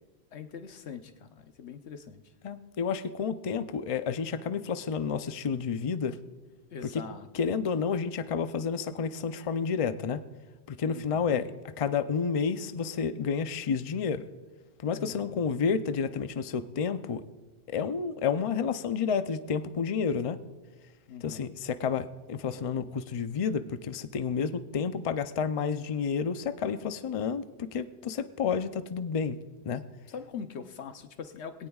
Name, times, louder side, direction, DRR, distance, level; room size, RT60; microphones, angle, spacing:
voice 1, 0.3-2.3 6.7-7.3 10.9-11.4 14.9-15.4 21.1-21.5 30.1-31.7, left 6 dB, 90° left, 8 dB, 1.1 m, -42 dB
voice 2, 2.4-6.2 6.8-7.0 7.3-10.2 10.7-11.5 11.8-14.2 14.8-17.2 17.7-20.4 21.2-29.4 29.6-29.8, left 6 dB, 40° left, 11 dB, 0.5 m, -30 dB
20.5 x 17.5 x 2.4 m, 1.2 s
omnidirectional pair, 1.1 m